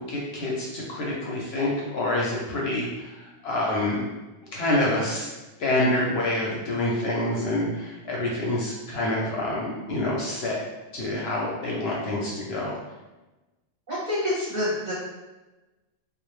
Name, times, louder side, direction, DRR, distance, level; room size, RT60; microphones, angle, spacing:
voice 1, 0.0-4.0 4.5-5.3 5.6-10.6 10.9-12.8, left 1 dB, 65° left, -4 dB, 0.7 m, -27 dB
voice 2, 13.9-14.9, left 1 dB, 45° right, -8 dB, 0.7 m, -27 dB
2.3 x 2.0 x 3.0 m, 1.1 s
omnidirectional pair, 1.3 m